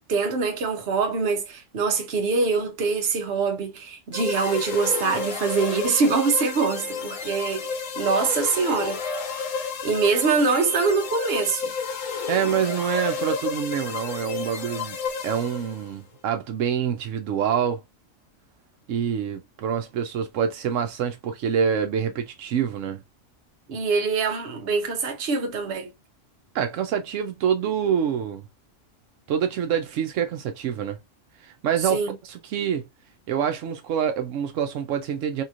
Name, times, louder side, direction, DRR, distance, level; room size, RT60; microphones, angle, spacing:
voice 1, 0.1-9.0 9.8-11.7 23.7-25.9 31.8-32.2, right 4 dB, 60° right, 1.0 m, -24 dB
sound 1, 4.1-15.9, left 5 dB, 90° left, 1.1 m, -31 dB
voice 2, 12.3-15.0 15.2-17.8 18.9-23.0 26.5-28.4 29.3-31.0 31.4-32.0 32.3-32.8 33.3-35.4, right 8 dB, 85° right, 1.0 m, -26 dB
3.0 x 2.8 x 2.4 m
omnidirectional pair, 1.3 m